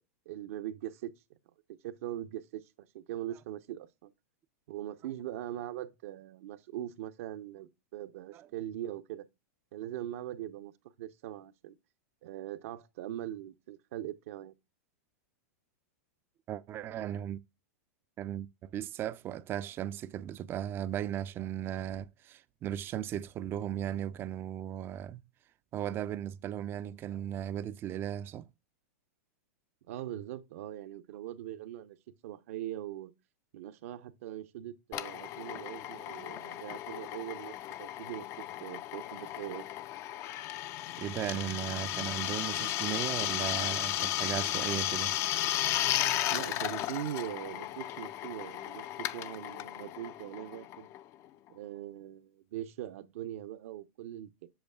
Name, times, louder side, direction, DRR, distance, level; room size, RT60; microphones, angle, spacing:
voice 1, 0.3-1.1 1.8-2.6 2.9-4.1 4.7-9.3 9.7-10.7 11.0-11.8 12.2-14.5 29.9-32.0 32.2-33.1 33.5-39.6 46.3-50.9 51.5-54.5, right 12 dB, 65° right, 0.7 m, -41 dB
voice 2, 16.5-17.4 18.2-25.2 25.7-28.5 41.0-45.1, right 10 dB, 25° right, 0.4 m, -36 dB
Drill, 34.9-51.3, left 13 dB, 35° left, 0.4 m, -35 dB
7.9 x 6.4 x 2.3 m
hypercardioid pair, 130°, 8 cm